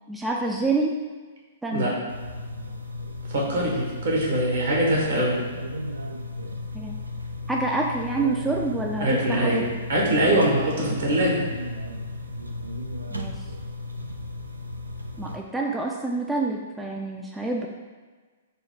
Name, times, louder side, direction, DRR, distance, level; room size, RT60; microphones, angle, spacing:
voice 1, 0.1-0.9 1.6-1.9 6.7-7.0 7.5-9.7 13.1-13.3 15.2-17.7, right 3 dB, 5° right, -1 dB, 0.3 m, -27 dB
sound 1, 2.1-15.4, left 2 dB, 90° right, 0.3 m, -35 dB
voice 2, 3.3-5.4 9.0-11.5, right 1 dB, 65° right, -4 dB, 1.3 m, -23 dB
4.0 x 2.2 x 4.5 m, 1.4 s
figure-of-eight pair, 115°, 0 cm